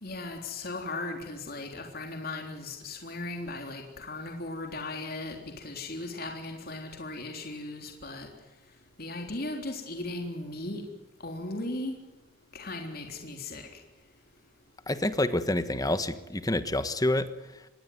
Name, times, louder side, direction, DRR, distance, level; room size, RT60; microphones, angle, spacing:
voice 1, 0.0-8.3 9.0-10.8 11.2-12.0 12.5-13.8, left 2 dB, 50° left, 3 dB, 3.6 m, -37 dB
voice 2, 14.9-17.7, left 1 dB, 20° left, 11 dB, 1.3 m, -28 dB
26.5 x 21.0 x 9.5 m, 1.1 s
head